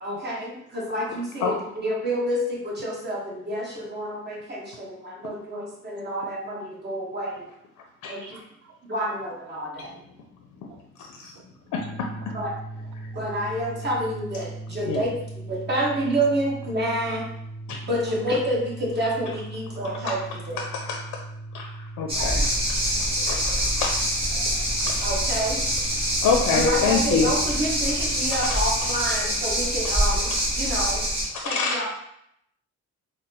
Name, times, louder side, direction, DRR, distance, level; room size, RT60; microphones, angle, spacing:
voice 1, 0.0-7.4 8.1-8.4 8.9-10.0 12.3-12.5 13.1-15.1 15.5-17.2 17.8-20.2 20.5-20.6 25.0-25.6 26.5-31.0 31.4-31.9, right 1 dB, 35° right, -3 dB, 1.2 m, -28 dB
voice 2, 8.3-8.8 10.7-10.8 13.6-13.7 18.3-18.4 22.1-22.4 23.0-23.7 24.3-24.7 25.0-25.1 29.6-29.7 31.3-31.4, right 6 dB, 85° right, 5 dB, 0.6 m, -45 dB
voice 3, 11.7-12.3 14.9-15.0 17.7-17.8 20.0-20.2 20.6-21.2 21.5-21.7 22.0-22.5 23.3-23.9 24.9-25.0 26.2-27.3 31.3-31.9, left 5 dB, 75° left, 2 dB, 0.5 m, -26 dB
sound 1, 11.8-29.1, right 2 dB, 55° right, 1.2 m, -39 dB
sound 2, 22.1-31.2, equal, 20° right, 1.3 m, -25 dB
4.0 x 2.0 x 2.7 m, 0.76 s
cardioid pair, 90°, 30 cm